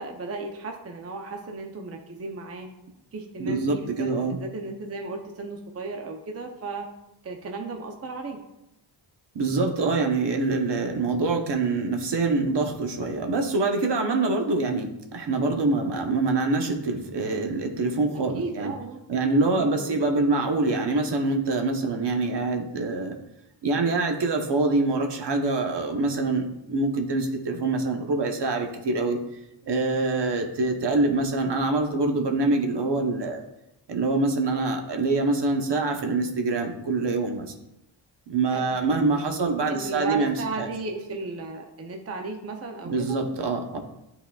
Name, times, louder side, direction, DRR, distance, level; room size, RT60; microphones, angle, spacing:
voice 1, 0.0-2.7 3.1-6.9 7.2-8.4 18.1-19.0 19.5-19.9 38.5-38.7 39.6-43.2, right 3 dB, 30° right, 3 dB, 0.7 m, -35 dB
voice 2, 3.4-4.4 9.3-18.7 19.1-23.1 23.6-29.2 29.7-33.4 33.9-37.5 38.3-40.7 42.8-43.8, right 3 dB, 60° right, 3 dB, 1.0 m, -25 dB
10.0 x 4.0 x 2.3 m, 0.88 s
cardioid pair, 90°, 47 cm